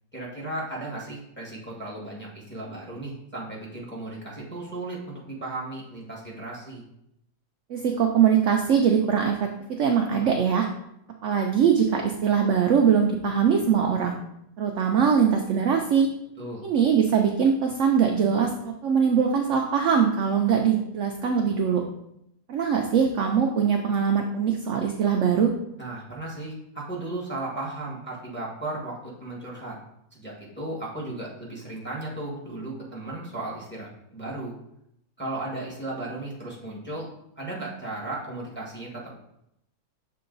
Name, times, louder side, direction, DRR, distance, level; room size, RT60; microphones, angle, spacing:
voice 1, 0.1-6.8 16.4-16.6 25.8-29.8 30.1-34.5 35.2-37.1 37.4-39.2, right 2 dB, 5° left, -5 dB, 1.4 m, -35 dB
voice 2, 7.7-10.7 11.2-14.1 14.6-16.1 16.6-21.8 22.5-25.5, right 7 dB, 70° right, 3 dB, 0.7 m, -22 dB
6.8 x 3.7 x 3.9 m, 0.79 s
omnidirectional pair, 1.8 m